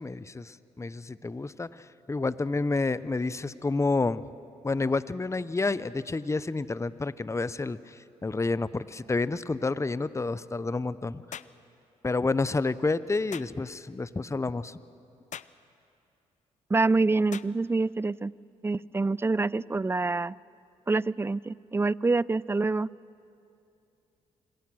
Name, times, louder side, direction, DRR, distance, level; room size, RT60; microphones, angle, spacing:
voice 1, 0.0-4.2 4.6-11.2 12.0-14.8, left 3 dB, 20° left, 17 dB, 0.7 m, -29 dB
sound 1, 11.3-11.6 13.3-13.5 15.3-15.6 17.3-17.5, left 9 dB, 55° left, 0.6 m, -41 dB
voice 2, 16.7-18.3 18.6-20.3 20.9-22.9, right 3 dB, 15° right, 22 dB, 0.4 m, -26 dB
26.0 x 21.0 x 6.2 m, 2.7 s
hypercardioid pair, 45°, 15 cm